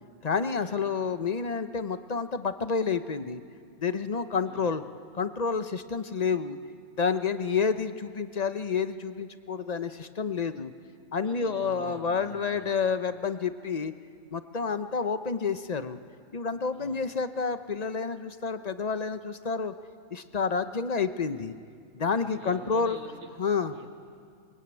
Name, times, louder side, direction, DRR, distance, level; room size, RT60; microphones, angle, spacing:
voice 1, 0.2-3.4 3.8-4.8 5.1-6.6 7.0-10.7 11.1-13.9 14.3-16.0 16.3-19.7 20.1-21.5 21.9-23.0 23.4-23.7, left 5 dB, 35° left, 10 dB, 0.8 m, -29 dB
voice 2, 11.2-12.7 16.7-17.0 22.1-23.3 23.7-23.9, right 3 dB, 75° right, 2 dB, 2.4 m, -47 dB
23.0 x 22.5 x 8.9 m, 2.3 s
omnidirectional pair, 1.4 m